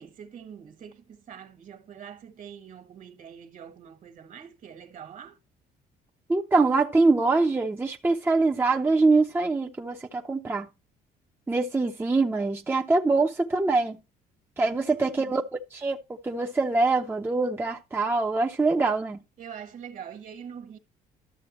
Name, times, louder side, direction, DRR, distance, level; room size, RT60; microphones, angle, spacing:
voice 1, 0.0-5.4 14.7-15.3 19.4-20.8, right 8 dB, 50° right, 1.6 m, -44 dB
voice 2, 6.3-10.7 11.5-14.0 14.6-15.4 15.7-16.0 16.2-19.2, right 3 dB, 15° right, 0.7 m, -24 dB
12.5 x 6.8 x 3.0 m
cardioid pair, 110°, 17 cm